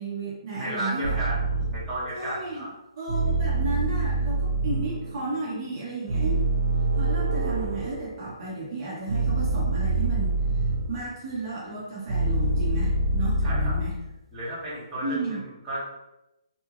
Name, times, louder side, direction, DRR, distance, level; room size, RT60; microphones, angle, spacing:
voice 1, 0.0-1.2 2.1-2.7 3.0-6.4 6.9-10.4 10.9-13.9 15.0-15.4, right 2 dB, 35° right, -7 dB, 1.1 m, -33 dB
voice 2, 0.5-2.7 13.4-13.7 14.3-15.8, right 1 dB, 5° right, -14 dB, 1.2 m, -33 dB
sound 1, 1.0-2.0 3.1-8.3 9.1-11.2 12.1-14.1, right 2 dB, 60° right, 0.4 m, -26 dB
2.9 x 2.6 x 2.5 m, 0.93 s
hypercardioid pair, 160°, 3 cm